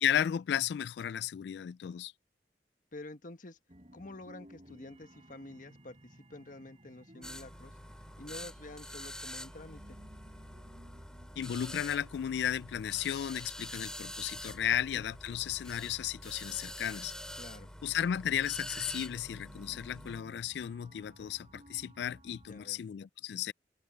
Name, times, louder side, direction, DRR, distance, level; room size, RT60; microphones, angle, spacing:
voice 1, 0.0-2.1 11.4-17.1 17.8-23.5, left 9 dB, 70° left, 0.3 m, -34 dB
voice 2, 2.9-3.6 3.9-7.8 8.2-10.0 14.8-15.0 17.4-17.7 22.5-22.8, left 2 dB, 50° left, 1.5 m, -48 dB
sound 1, 3.7-22.7, equal, 35° right, 4.3 m, -56 dB
sound 2, 7.2-20.2, left 1 dB, 5° left, 3.2 m, -46 dB
open air
head